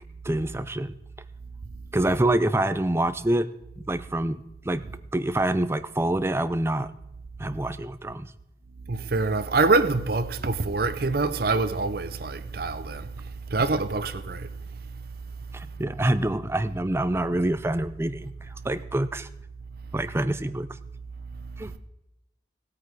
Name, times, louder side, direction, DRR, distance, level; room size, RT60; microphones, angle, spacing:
voice 1, 0.2-0.9 1.9-3.5 3.8-4.4 4.6-4.8 5.1-6.9 7.4-8.3 15.5-18.3 18.6-19.3 19.9-20.7 21.6-21.7, right 1 dB, 15° right, 0.5 m, -26 dB
voice 2, 8.9-14.5 14.9-15.0 21.3-21.8, right 3 dB, 55° right, 0.7 m, -26 dB
16.5 x 8.5 x 4.7 m
head